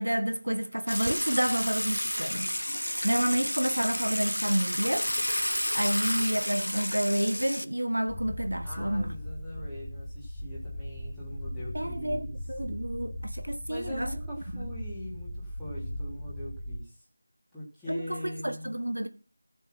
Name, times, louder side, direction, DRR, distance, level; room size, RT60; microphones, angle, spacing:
voice 1, 0.0-2.5 3.0-5.1 5.7-9.2 11.7-14.1 14.5-14.7 17.9-19.1, right 1 dB, 75° right, 1.6 m, -29 dB
Water / Water tap faucet / Sink (filling or washing), 0.9-7.6, equal, 80° left, 0.9 m, -31 dB
sound 1, 8.1-16.8, equal, 25° left, 1.8 m, -38 dB
voice 2, 8.6-12.4 13.7-17.0 17.5-18.7, equal, ahead, 3.3 m, -42 dB
15.0 x 7.0 x 5.8 m
figure-of-eight pair, 170°, 0 cm